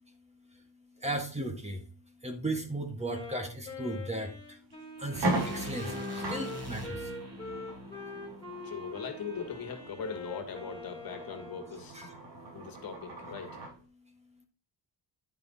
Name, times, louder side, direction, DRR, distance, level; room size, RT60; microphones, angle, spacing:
voice 1, 1.0-1.8 2.2-4.6 5.0-7.1 11.9-12.2, right 1 dB, 15° right, 4 dB, 1.7 m, -36 dB
Wind instrument woodwind instrument, 3.1-11.8, left 3 dB, 10° left, 3.7 m, -44 dB
sound 1, 4.1-4.3 4.7-4.8 5.1-13.8, right 1 dB, 85° right, 5.1 m, -39 dB
sound 2, 5.1-9.3, equal, 35° right, 2.6 m, -42 dB
voice 2, 8.6-12.0 12.5-13.5, left 6 dB, 55° left, 6 dB, 1.8 m, -40 dB
10.5 x 5.4 x 4.0 m, 0.31 s
wide cardioid pair, 140°, 43 cm